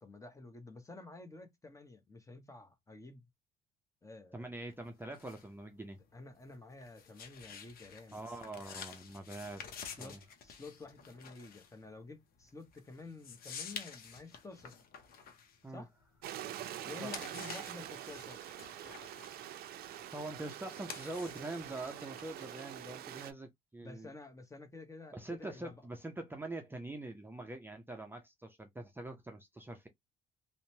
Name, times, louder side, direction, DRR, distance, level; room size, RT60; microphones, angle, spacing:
voice 1, 0.0-3.2 4.0-4.5 6.1-8.3 9.6-14.7 15.7-15.9 16.8-18.4 23.8-25.8, left 3 dB, 20° left, 0.8 m, -51 dB
voice 2, 4.3-6.0 8.1-10.2 15.6-15.8 17.0-17.1 19.9-24.1 25.1-29.9, right 2 dB, 10° right, 0.6 m, -44 dB
sound 1, 4.7-16.4 16.8-22.9, left 6 dB, 60° left, 0.7 m, -50 dB
Stream, 16.2-23.3, right 11 dB, 65° right, 0.5 m, -45 dB
2.8 x 2.1 x 2.7 m
supercardioid pair, 70°, 17 cm